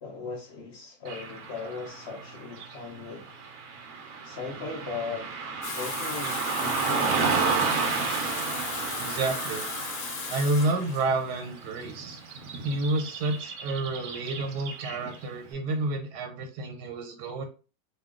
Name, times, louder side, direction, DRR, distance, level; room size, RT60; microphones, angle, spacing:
voice 1, 0.0-3.3 4.2-5.3 5.8-7.2, left 4 dB, 55° left, 0.7 m, -38 dB
Car passing by / Traffic noise roadway noise, 1.0-15.3, right 5 dB, 65° right, 0.9 m, -32 dB
Water tap faucet / Sink (filling or washing), 5.6-13.3, left 6 dB, 80° left, 1.3 m, -37 dB
voice 2, 9.0-9.7 10.3-12.2 12.6-17.5, right 2 dB, 80° right, 1.4 m, -29 dB
2.9 x 2.3 x 3.6 m
omnidirectional pair, 1.8 m